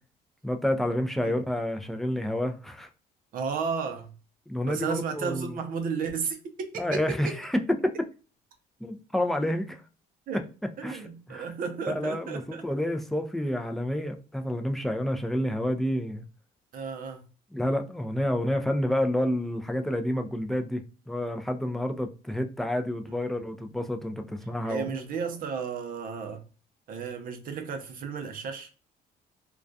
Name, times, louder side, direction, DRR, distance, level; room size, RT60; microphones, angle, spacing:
voice 1, 0.4-2.9 4.5-5.5 6.8-7.9 8.8-9.8 10.8-11.5 11.9-16.2 17.5-25.0, left 1 dB, ahead, 0.3 m, -29 dB
voice 2, 3.3-4.1 4.7-7.3 10.3-10.5 10.8-12.7 16.7-17.2 23.1-23.2 24.7-26.4 26.9-28.7, right 6 dB, 55° right, 0.6 m, -33 dB
2.2 x 2.2 x 2.5 m
cardioid pair, 110°, 17 cm